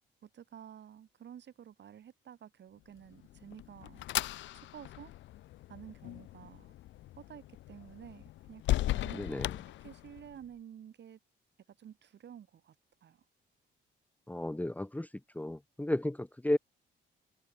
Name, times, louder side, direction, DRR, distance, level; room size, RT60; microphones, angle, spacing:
voice 1, 0.2-4.1 4.5-5.1 5.7-6.7 7.2-9.4 9.8-11.2 11.8-12.7 13.0-13.2, right 9 dB, 60° right, 7.8 m, -51 dB
sound 1, 3.1-10.4, left 15 dB, 70° left, 0.4 m, -38 dB
voice 2, 9.1-9.5 14.3-15.1 15.3-16.6, left 1 dB, 10° left, 1.6 m, -33 dB
open air
cardioid pair, 90°, 20 cm